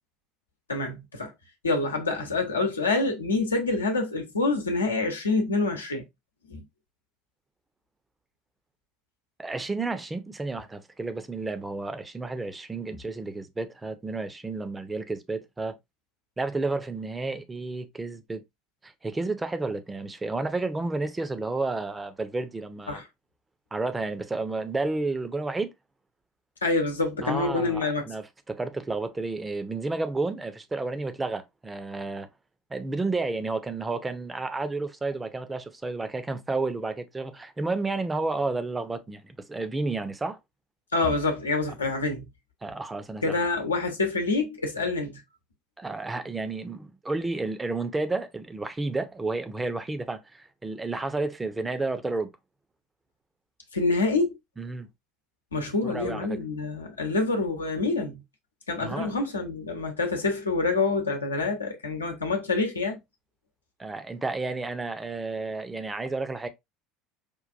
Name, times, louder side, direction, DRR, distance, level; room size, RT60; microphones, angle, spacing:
voice 1, 0.7-1.3 1.6-6.0 6.5-6.6 22.9-23.0 26.6-28.0 40.9-42.3 43.2-45.1 53.7-54.3 55.5-58.2 58.7-63.0, left 3 dB, 80° left, 0.9 m, -26 dB
voice 2, 9.4-15.8 16.4-18.4 18.8-23.0 23.7-25.7 27.2-32.3 32.7-40.4 42.6-43.4 45.8-52.3 54.6-54.9 55.8-56.4 58.8-59.1 63.8-66.5, right 3 dB, 15° right, 0.6 m, -31 dB
5.2 x 2.5 x 2.5 m
figure-of-eight pair, 70°, 0 cm